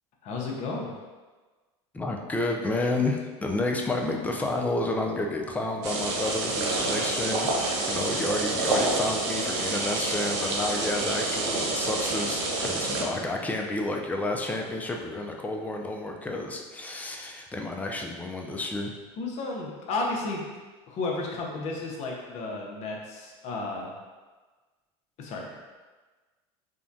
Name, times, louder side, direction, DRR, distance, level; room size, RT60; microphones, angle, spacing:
voice 1, 0.2-0.9 19.2-20.4 20.9-23.9 25.2-25.6, left 3 dB, 50° left, -1 dB, 0.7 m, -33 dB
voice 2, 1.9-7.5 7.8-18.9, left 2 dB, 10° left, 1 dB, 0.3 m, -30 dB
sound 1, 5.8-13.0, right 2 dB, 75° right, 0.6 m, -28 dB
3.5 x 2.2 x 2.6 m, 1.3 s
supercardioid pair, 105°, 15 cm